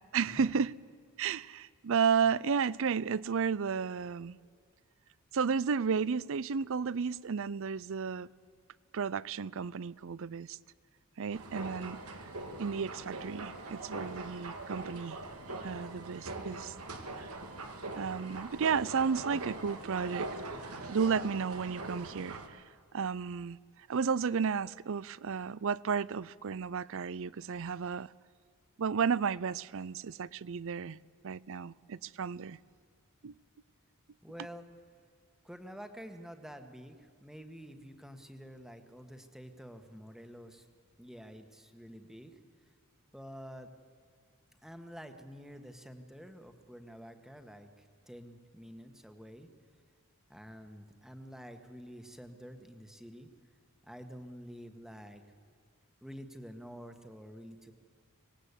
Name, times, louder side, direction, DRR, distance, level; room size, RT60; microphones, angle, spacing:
voice 1, 0.1-0.7 1.2-4.4 5.3-8.3 8.9-10.6 11.2-12.0 12.6-15.2 15.6-16.7 18.0-20.3 20.9-22.6 22.9-23.6 23.9-28.1 28.8-31.0 31.2-32.6 33.2-33.3, right 6 dB, 65° right, 0.5 m, -32 dB
sound 1, 11.3-22.5, right 2 dB, 90° right, 2.2 m, -42 dB
voice 2, 34.2-34.7 35.4-40.7 41.0-42.4 43.1-43.7 44.6-49.5 50.3-53.3 53.8-55.2 56.0-57.7, equal, ahead, 1.5 m, -49 dB
25.0 x 19.0 x 8.4 m
head